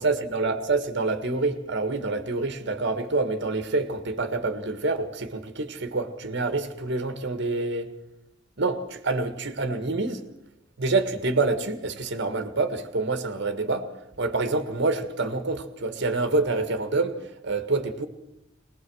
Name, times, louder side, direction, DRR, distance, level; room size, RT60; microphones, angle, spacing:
voice 1, 0.0-7.9 8.6-10.2 10.8-13.9 14.2-18.1, right 3 dB, 60° right, 1.8 m, -27 dB
21.5 x 20.5 x 6.4 m
head